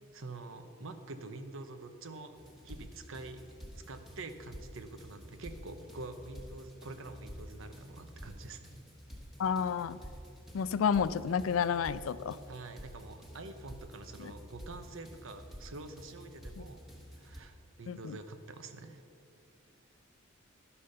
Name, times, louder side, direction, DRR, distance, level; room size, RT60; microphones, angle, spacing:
voice 1, 0.1-2.4 2.6-3.4 3.7-8.6 12.5-16.8 17.1-19.0, right 3 dB, 70° right, 9 dB, 0.8 m, -46 dB
sound 1, 2.4-17.4, equal, ahead, 1.4 m, -50 dB
voice 2, 9.4-10.0 10.5-12.4 16.6-16.7 17.9-18.2, left 7 dB, 70° left, 16 dB, 0.4 m, -30 dB
12.0 x 5.6 x 6.6 m, 2.5 s
head